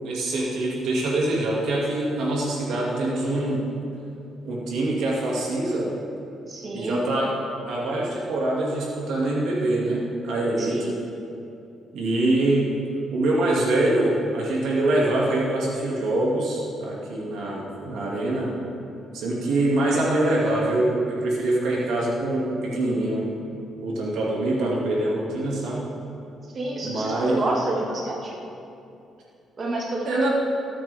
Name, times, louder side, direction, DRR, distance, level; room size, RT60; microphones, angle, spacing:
voice 1, 0.0-3.6 4.4-5.9 6.7-7.4 7.7-10.9 11.9-12.8 13.1-18.5 19.1-23.3 23.8-25.9 26.8-27.4 30.1-30.3, right 1 dB, 80° right, -4 dB, 2.4 m, -24 dB
voice 2, 6.5-7.0 10.6-10.9 26.5-28.4 29.6-30.1, right 2 dB, 40° right, -2 dB, 2.0 m, -29 dB
19.0 x 8.6 x 3.6 m, 2.6 s
cardioid pair, 90°, 0 cm